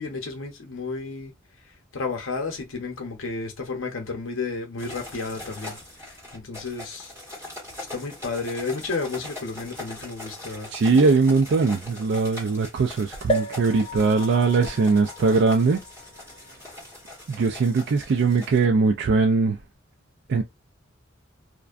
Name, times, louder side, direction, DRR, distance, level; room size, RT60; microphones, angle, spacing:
voice 1, 0.0-1.3 1.6-7.1 7.9-10.7, left 4 dB, 80° left, 0.8 m, -32 dB
sound 1, 4.8-18.6, left 2 dB, 15° right, 1.3 m, -41 dB
voice 2, 10.7-15.8 17.3-19.6 20.3-20.4, right 4 dB, 60° right, 0.4 m, -21 dB
sound 2, 13.3-17.0 17.6-17.7 17.9-18.0, equal, 25° left, 0.4 m, -33 dB
2.5 x 2.2 x 2.4 m
head